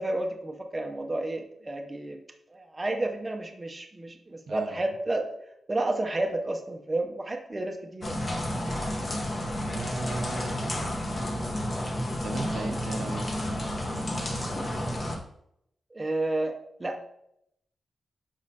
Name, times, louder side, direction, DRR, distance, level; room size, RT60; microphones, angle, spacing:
voice 1, 0.0-2.2 2.5-5.3 5.7-8.1 15.9-16.5 16.8-17.0, right 2 dB, 20° right, 3 dB, 0.5 m, -31 dB
voice 2, 4.5-4.9 9.6-10.8 11.1-11.6 12.2-13.3, right 3 dB, 65° right, 5 dB, 0.6 m, -38 dB
sound 1, 8.0-15.2, left 1 dB, 30° left, 0.9 m, -31 dB
7.2 x 5.3 x 2.7 m, 0.75 s
wide cardioid pair, 180°, 0 cm